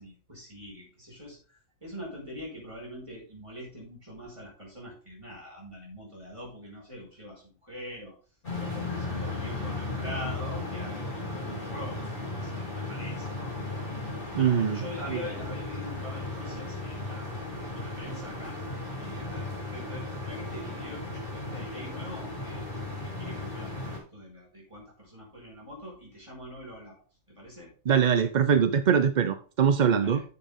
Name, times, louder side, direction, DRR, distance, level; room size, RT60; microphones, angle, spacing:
voice 1, 0.0-8.1 8.6-12.1 12.3-13.3 14.3-17.4 17.7-18.6 19.0-27.0 27.4-27.7 30.0-30.2, left 1 dB, 20° right, -3 dB, 5.4 m, -43 dB
sound 1, 8.4-24.0, left 2 dB, 55° left, 4.5 m, -36 dB
voice 2, 14.3-14.8 15.1-15.2 27.9-30.2, right 7 dB, 50° right, 10 dB, 0.5 m, -23 dB
10.5 x 7.1 x 3.7 m, 0.38 s
omnidirectional pair, 1.4 m